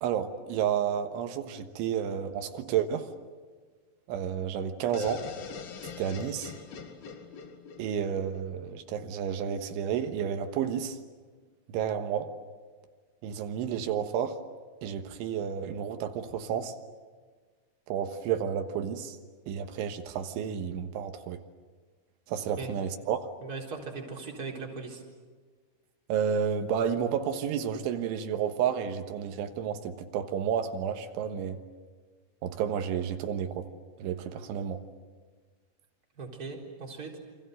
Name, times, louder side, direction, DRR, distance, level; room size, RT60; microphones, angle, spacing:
voice 1, 0.0-3.1 4.1-5.3 5.8-6.5 7.8-11.0 11.7-12.3 13.2-14.4 14.8-16.8 17.9-19.2 19.5-21.4 22.3-23.3 26.1-31.6 32.4-33.7 34.0-34.8, right 8 dB, 90° right, 7 dB, 3.8 m, -31 dB
sound 1, 4.9-8.7, left 6 dB, 55° left, 3.6 m, -42 dB
voice 2, 23.4-25.0 36.2-37.1, right 4 dB, 20° right, -1 dB, 4.0 m, -39 dB
28.5 x 25.5 x 7.9 m, 1.5 s
omnidirectional pair, 5.3 m